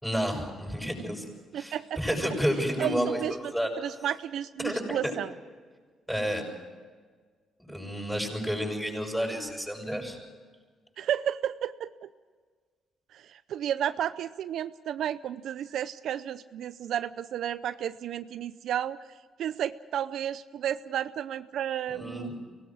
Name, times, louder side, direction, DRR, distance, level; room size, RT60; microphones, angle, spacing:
voice 1, 0.0-1.3 1.5-3.7 4.6-5.1 6.1-6.4 7.7-10.2 21.9-22.4, equal, ahead, 2 dB, 7.2 m, -30 dB
voice 2, 1.5-2.0 2.8-3.5 3.8-5.3 11.0-12.1 13.1-19.0 19.4-22.3, right 10 dB, 75° right, 13 dB, 0.6 m, -32 dB
24.5 x 18.5 x 6.3 m, 1.6 s
cardioid pair, 90°, 0 cm